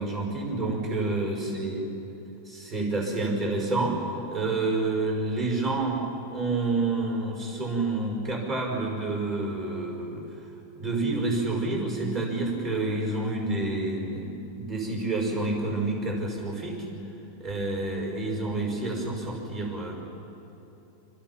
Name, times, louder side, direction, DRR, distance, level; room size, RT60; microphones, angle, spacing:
voice 1, 0.0-1.8 2.5-4.0 4.3-6.0 6.3-10.2 10.7-16.9 17.4-19.9, right 2 dB, 15° right, -1 dB, 5.8 m, -28 dB
28.5 x 27.5 x 5.9 m, 3.0 s
omnidirectional pair, 3.7 m